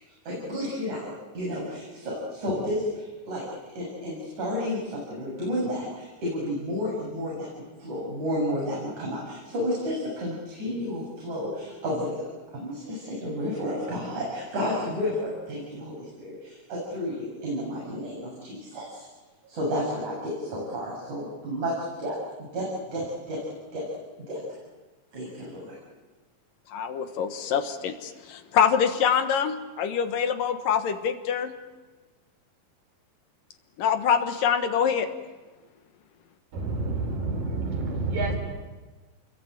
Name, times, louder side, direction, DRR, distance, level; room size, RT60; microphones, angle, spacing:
voice 1, 0.2-3.4 3.7-7.5 7.8-19.0 19.4-23.4 23.7-23.8 24.3-24.6 25.1-25.8, equal, 55° right, -5 dB, 8.6 m, -31 dB
voice 2, 26.7-31.5 33.8-35.1, left 7 dB, 75° left, 8 dB, 3.0 m, -25 dB
voice 3, 36.5-38.4, right 3 dB, 80° right, 2 dB, 6.7 m, -28 dB
30.0 x 22.0 x 8.9 m, 1.3 s
omnidirectional pair, 4.0 m